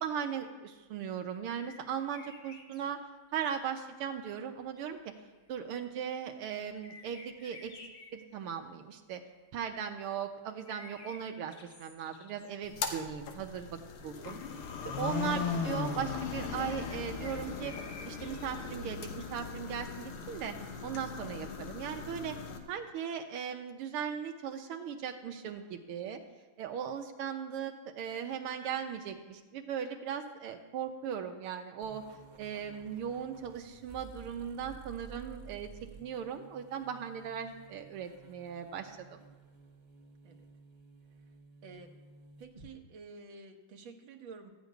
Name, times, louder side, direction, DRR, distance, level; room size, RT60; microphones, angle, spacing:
voice 1, 0.0-3.0 3.3-5.0 5.5-7.8 8.1-9.2 9.5-11.5 11.8-13.8 14.0-14.4 15.0-17.7 18.0-20.6 20.8-22.4 22.7-26.2 26.6-32.0 32.4-35.7 36.0-39.2, right 8 dB, 90° right, 4 dB, 1.8 m, -38 dB
sound 1, 1.5-2.9 6.7-8.1 10.7-12.7 13.3-13.4 14.0-14.1 14.2-14.3 16.7-19.3, left 3 dB, 45° left, 1.9 m, -52 dB
sound 2, 12.6-22.6, left 5 dB, 90° left, 2.0 m, -38 dB
sound 3, 31.8-42.7, right 5 dB, 25° right, 1.1 m, -54 dB
voice 2, 41.6-41.9 42.4-44.5, right 4 dB, 65° right, 3 dB, 1.8 m, -51 dB
14.5 x 5.2 x 9.3 m, 1.2 s
omnidirectional pair, 2.4 m